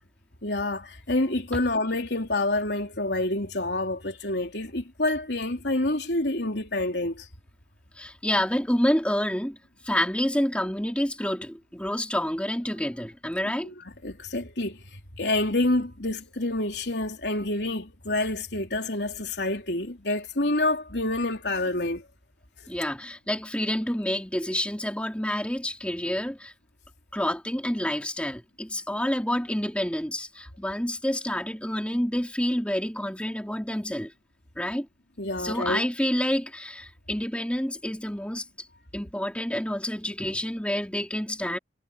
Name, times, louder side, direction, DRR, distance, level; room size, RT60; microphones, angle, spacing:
voice 1, 0.4-7.3 13.6-13.7 14.0-14.8 15.2-22.0 35.2-35.8, left 2 dB, 65° left, 3.7 m, -27 dB
voice 2, 8.0-9.6 9.8-13.7 22.7-26.5 27.1-34.1 34.6-34.9 35.4-38.4 38.9-41.6, left 1 dB, 5° left, 3.5 m, -28 dB
head